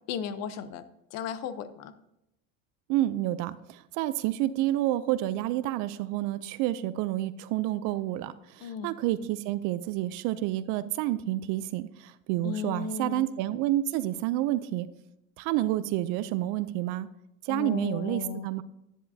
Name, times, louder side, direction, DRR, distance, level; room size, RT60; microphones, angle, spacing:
voice 1, 0.1-1.9 8.6-8.9 12.4-13.3 17.5-18.5, left 7 dB, 55° left, 13 dB, 0.8 m, -35 dB
voice 2, 2.9-14.9 15.4-17.1 17.4-18.6, right 14 dB, 65° right, 13 dB, 0.6 m, -29 dB
11.0 x 10.0 x 2.7 m, 0.84 s
cardioid pair, 140°, 32 cm